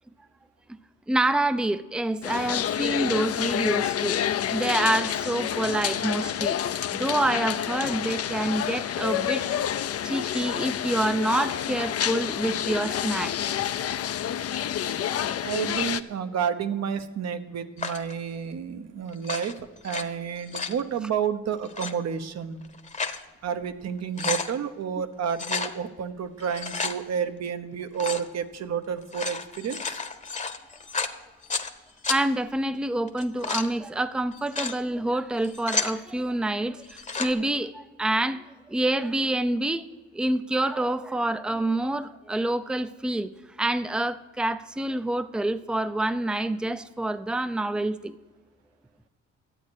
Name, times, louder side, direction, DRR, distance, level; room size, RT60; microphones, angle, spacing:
voice 1, 1.1-4.2 4.5-6.6 6.9-9.4 10.0-13.5 13.8-13.9 32.1-39.9 40.1-43.3 43.6-48.2, right 1 dB, 5° right, 13 dB, 0.5 m, -27 dB
sound 1, 2.2-16.0, left 10 dB, 50° left, 0.6 m, -28 dB
voice 2, 15.4-22.6 23.4-30.0, right 7 dB, 60° right, 10 dB, 1.0 m, -30 dB
sound 2, 17.8-18.1 19.1-20.0 20.4-20.8 21.6-21.9 22.6-23.2 23.6-23.7 24.0-24.5 25.3-25.7 26.4-27.0 27.9-28.3 29.0-31.7 32.0-32.2 33.1-33.7 34.3-34.8 35.3-36.0 36.8-37.3, left 4 dB, 25° left, 1.0 m, -31 dB
12.5 x 8.4 x 6.4 m, 1.3 s
cardioid pair, 90°, 30 cm